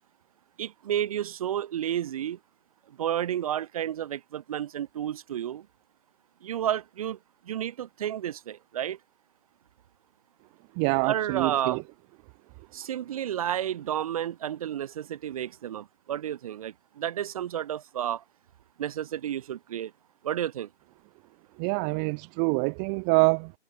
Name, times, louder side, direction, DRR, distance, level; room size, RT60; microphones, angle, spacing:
voice 1, 0.6-2.4 3.0-5.7 6.4-7.2 7.5-9.0 11.0-11.8 12.7-18.2 18.8-19.9 20.2-20.7, right 10 dB, 30° right, 2.7 m, -31 dB
voice 2, 10.8-11.8 21.6-23.5, right 40 dB or more, 5° right, 0.7 m, -25 dB
hypercardioid pair, 160°, 35 cm